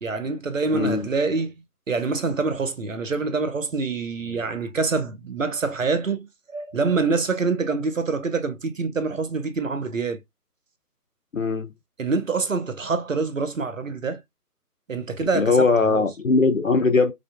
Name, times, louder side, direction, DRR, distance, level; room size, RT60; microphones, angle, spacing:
voice 1, 0.0-10.2 12.0-14.2 14.9-16.0, right 4 dB, 55° right, 0.7 m, -26 dB
voice 2, 0.7-1.1 11.3-11.7 15.3-17.1, left 4 dB, 60° left, 0.5 m, -20 dB
4.9 x 2.1 x 2.4 m
figure-of-eight pair, 160°, 48 cm